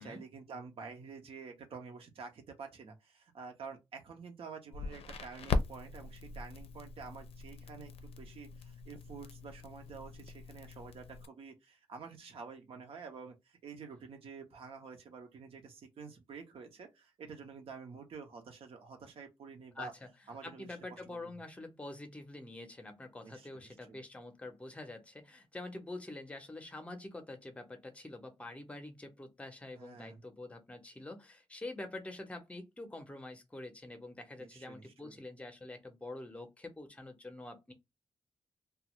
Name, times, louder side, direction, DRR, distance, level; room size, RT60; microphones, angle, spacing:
voice 1, 0.0-19.9 20.3-21.3 23.2-24.0 29.8-30.2 34.4-35.2, right 5 dB, 70° right, 0.8 m, -49 dB
Crackle, 4.7-11.3, left 4 dB, 70° left, 0.5 m, -40 dB
voice 2, 19.8-20.1 20.4-37.7, left 2 dB, 10° left, 0.7 m, -46 dB
2.4 x 2.2 x 3.0 m
wide cardioid pair, 150°, 10 cm